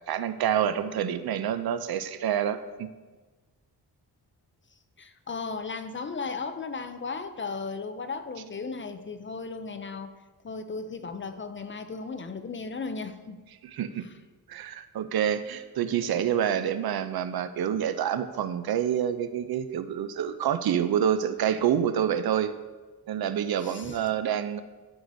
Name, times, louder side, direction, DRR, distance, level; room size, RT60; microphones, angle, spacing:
voice 1, 0.1-2.9 13.6-14.1 14.5-22.5 23.1-24.6, right 9 dB, 65° right, 12 dB, 0.5 m, -27 dB
voice 2, 5.0-10.1 10.4-13.4 14.0-14.1 23.6-24.0, left 4 dB, 30° left, 10 dB, 0.4 m, -36 dB
12.5 x 4.8 x 2.6 m, 1.3 s
cardioid pair, 95°, 40 cm